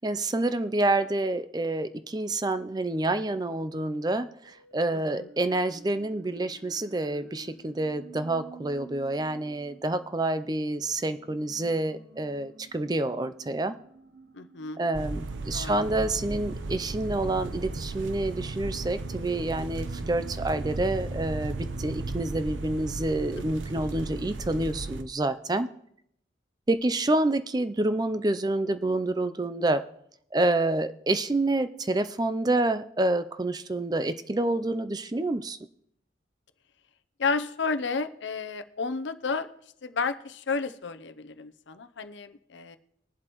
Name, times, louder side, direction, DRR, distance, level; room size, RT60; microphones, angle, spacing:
voice 1, 0.0-13.8 14.8-25.7 26.7-29.8 30.3-35.6, right 2 dB, 20° right, 12 dB, 0.4 m, -28 dB
sound 1, 4.4-20.7, right 2 dB, 65° right, 1.0 m, -50 dB
voice 2, 4.9-5.3 14.3-14.8 15.5-15.8 20.0-20.1 37.2-39.5 39.8-42.8, left 4 dB, 75° left, 11 dB, 0.7 m, -32 dB
sound 2, 14.9-25.0, right 2 dB, 90° right, 0.7 m, -35 dB
21.0 x 7.6 x 3.0 m, 0.71 s
head